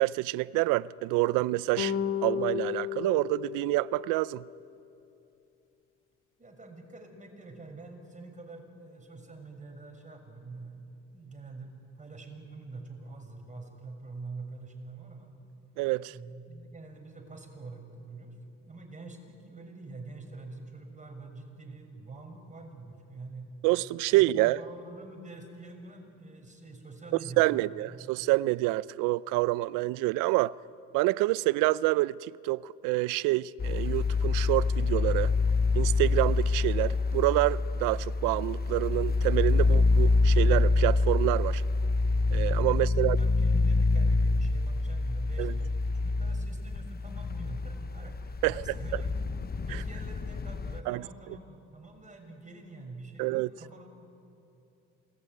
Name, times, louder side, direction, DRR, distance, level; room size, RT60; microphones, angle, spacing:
voice 1, 0.0-1.9 2.2-4.4 15.8-16.2 23.6-24.6 27.4-30.6 30.9-35.3 35.7-41.6 42.3-43.2 45.4-45.5 48.4-48.6 49.7-49.8 50.9-51.0 53.2-53.5, right 19 dB, 90° right, 0.5 m, -27 dB
sound 1, 1.8-4.3, left 9 dB, 80° left, 1.9 m, -33 dB
voice 2, 6.4-11.7 12.0-15.3 16.1-18.3 18.7-23.5 24.1-27.9 42.7-45.7 45.9-49.2 49.7-53.9, right 3 dB, 25° right, 6.3 m, -46 dB
sound 2, 33.6-50.8, left 3 dB, 30° left, 0.8 m, -26 dB
27.5 x 20.0 x 9.4 m
supercardioid pair, 65°, 31 cm